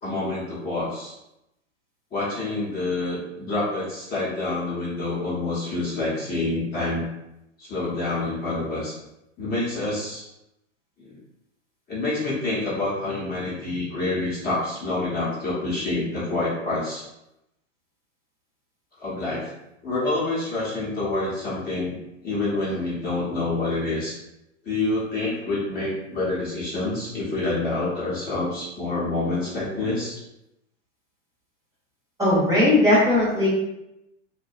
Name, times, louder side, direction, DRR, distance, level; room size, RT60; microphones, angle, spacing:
voice 1, 0.0-1.1 2.1-7.1 7.6-9.0 9.4-10.2 11.0-11.2 11.9-17.0 19.0-19.5 19.8-22.0 22.2-24.2 24.6-30.2, left 2 dB, 25° left, -7 dB, 0.9 m, -27 dB
voice 2, 32.2-33.5, left 1 dB, 10° right, -8 dB, 0.9 m, -18 dB
2.6 x 2.2 x 2.5 m, 0.87 s
hypercardioid pair, 115°, 39 cm